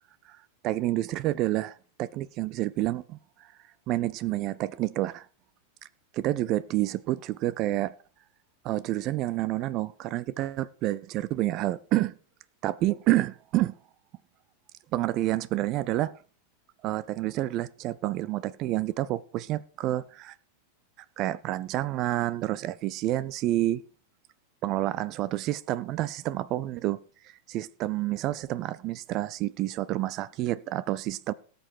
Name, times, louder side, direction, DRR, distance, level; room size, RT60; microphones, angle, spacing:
voice 1, 0.6-3.5 3.9-5.3 6.1-7.9 8.6-12.1 12.6-13.7 14.9-16.2 16.8-20.4 21.2-23.8 24.6-27.0 27.2-31.3, right 15 dB, 40° right, 0.6 m, -29 dB
18.0 x 7.8 x 4.6 m
figure-of-eight pair, 90°, 0 cm